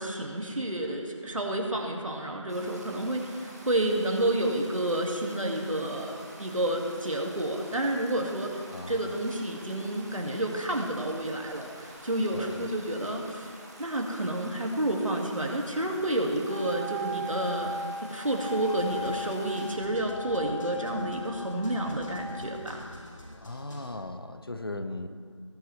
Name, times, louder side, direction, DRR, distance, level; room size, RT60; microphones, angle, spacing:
voice 1, 0.0-8.6 8.9-13.5 13.8-17.7 18.1-22.9, right 1 dB, 90° right, 1 dB, 2.3 m, -30 dB
Stream, 2.5-19.8, right 1 dB, 30° right, 1.5 m, -48 dB
voice 2, 8.7-9.2 12.3-12.7 23.4-25.1, left 2 dB, 45° left, 8 dB, 0.8 m, -38 dB
Wind instrument woodwind instrument, 16.4-22.6, left 1 dB, 15° left, 2.8 m, -38 dB
sound 1, 18.7-23.9, left 1 dB, 75° left, 2.8 m, -49 dB
19.5 x 8.0 x 3.4 m, 2.2 s
figure-of-eight pair, 175°, 16 cm